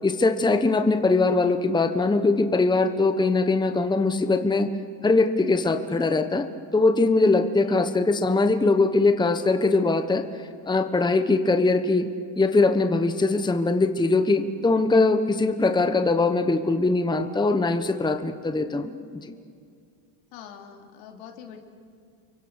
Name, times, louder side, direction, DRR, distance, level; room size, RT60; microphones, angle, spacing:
voice 1, 0.0-4.7 5.0-6.5 6.7-10.2 10.7-12.1 12.4-19.0 19.2-19.3, left 3 dB, 10° left, 8 dB, 1.1 m, -21 dB
voice 2, 20.3-21.6, left 8 dB, 75° left, 3 dB, 3.4 m, -44 dB
30.0 x 24.0 x 6.5 m, 2.2 s
supercardioid pair, 115°, 48 cm